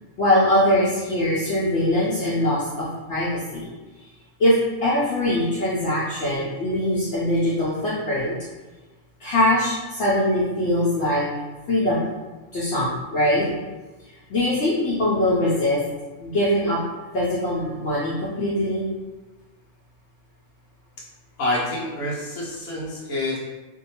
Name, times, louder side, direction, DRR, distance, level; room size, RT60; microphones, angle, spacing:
voice 1, 0.2-3.7 4.4-8.3 9.2-11.3 11.7-12.1 12.5-13.5 14.3-15.8 16.2-16.8 17.1-18.8, left 1 dB, 65° left, -9 dB, 0.8 m, -22 dB
voice 2, 21.4-23.4, left 1 dB, 85° left, -5 dB, 1.1 m, -27 dB
2.6 x 2.2 x 2.8 m, 1.2 s
omnidirectional pair, 1.4 m